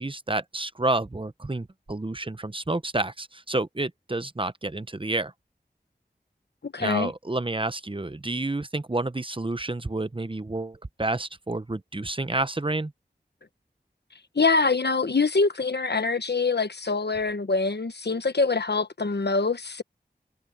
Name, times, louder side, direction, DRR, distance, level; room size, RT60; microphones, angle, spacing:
voice 1, 0.0-5.3 6.8-12.9, right 2 dB, 30° right, 0.8 m, -29 dB
voice 2, 6.6-7.1 14.3-19.8, left 4 dB, 75° left, 1.1 m, -24 dB
wide cardioid pair, 45°, 17 cm